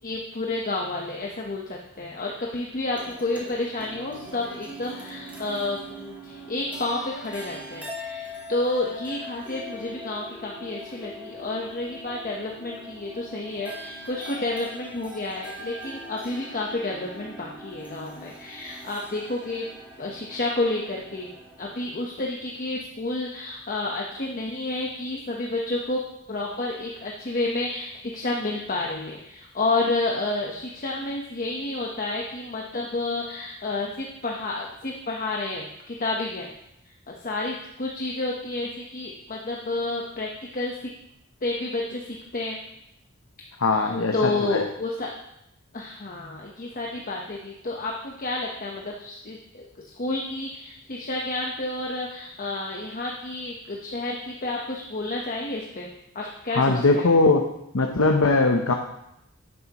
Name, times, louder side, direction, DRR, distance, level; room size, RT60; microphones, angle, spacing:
voice 1, 0.0-19.7 20.0-21.3 21.6-26.0 26.3-36.5 37.1-40.9 41.4-42.6 43.7-45.1 45.7-49.6 50.0-55.9 56.1-57.1, left 2 dB, 40° left, -1 dB, 1.0 m, -30 dB
sound 1, 2.9-21.8, equal, 5° right, 2.0 m, -42 dB
voice 2, 43.6-44.1 44.4-44.6 56.6-57.5 57.7-58.7, left 3 dB, 75° left, 3 dB, 0.8 m, -20 dB
11.0 x 10.0 x 3.0 m, 0.82 s
head